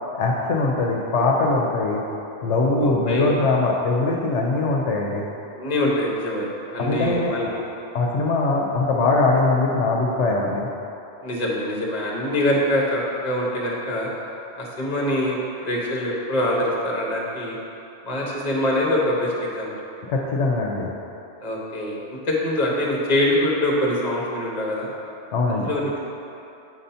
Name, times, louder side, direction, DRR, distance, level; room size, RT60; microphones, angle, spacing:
voice 1, 0.1-2.0 2.4-5.2 6.8-7.5 7.9-10.7 20.1-20.9 25.3-25.7, left 3 dB, 75° left, -1 dB, 1.0 m, -21 dB
voice 2, 2.8-3.3 5.6-6.5 6.7-7.6 11.2-14.1 14.6-17.6 18.0-19.7 21.4-24.9 25.5-26.1, left 1 dB, 35° left, -3 dB, 1.0 m, -24 dB
7.7 x 2.6 x 5.5 m, 2.8 s
omnidirectional pair, 1.2 m